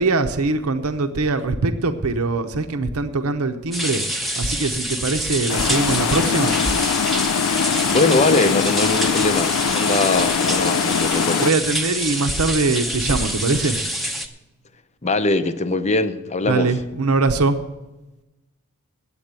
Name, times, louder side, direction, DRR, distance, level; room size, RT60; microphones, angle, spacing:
voice 1, 0.0-4.0 4.4-6.6 11.4-13.8 16.4-17.6, right 3 dB, 75° right, 0.8 m, -22 dB
sound 1, 3.7-14.3, right 1 dB, ahead, 0.8 m, -26 dB
sound 2, 5.5-11.5, left 7 dB, 75° left, 0.4 m, -22 dB
sound 3, 5.8-13.8, equal, 30° right, 1.0 m, -39 dB
voice 2, 7.9-11.5 15.0-16.7, left 2 dB, 30° left, 0.6 m, -21 dB
8.9 x 8.4 x 8.1 m
head